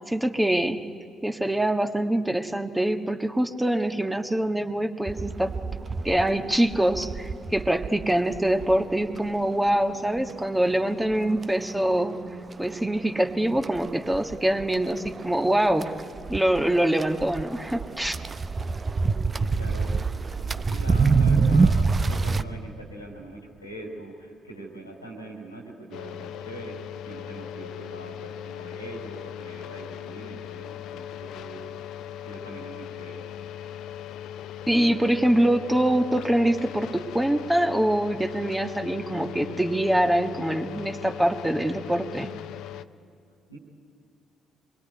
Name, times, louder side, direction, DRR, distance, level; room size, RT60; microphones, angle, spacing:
voice 1, 0.1-0.8 1.2-5.6 6.0-12.2 12.6-15.9 16.3-18.2 34.7-42.3, right 1 dB, 10° right, 6 dB, 1.5 m, -24 dB
sound 1, 5.1-22.4, right 4 dB, 35° right, 0.8 m, -28 dB
voice 2, 19.3-20.0 20.3-33.2 43.5-43.6, right 1 dB, 90° left, 2 dB, 2.7 m, -42 dB
sound 2, 25.9-42.8, left 10 dB, 60° left, 0.7 m, -39 dB
25.5 x 21.5 x 9.7 m, 2.2 s
figure-of-eight pair, 45°, 0 cm